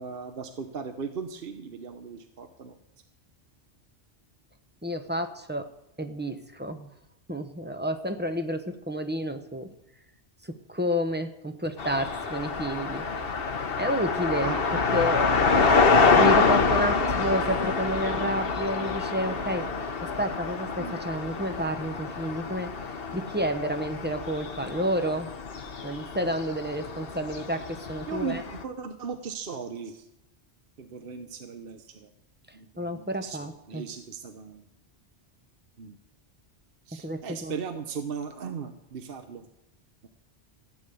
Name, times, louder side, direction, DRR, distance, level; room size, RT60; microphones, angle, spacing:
voice 1, 0.0-2.7 14.4-14.6 20.8-21.0 28.0-30.1 30.8-32.1 32.5-34.6 35.8-36.0 36.9-39.5 40.0-40.1, right 6 dB, 60° right, 7 dB, 1.1 m, -37 dB
voice 2, 4.8-5.7 6.0-6.9 7.3-9.7 10.7-13.1 13.8-14.5 14.9-15.6 15.9-19.6 20.2-22.7 23.1-25.3 25.8-28.4 32.8-33.9 37.0-37.5, equal, 10° right, 7 dB, 1.0 m, -30 dB
sound 1, 11.8-28.6, left 4 dB, 60° left, 1.2 m, -26 dB
15.0 x 9.6 x 6.9 m, 0.86 s
omnidirectional pair, 1.1 m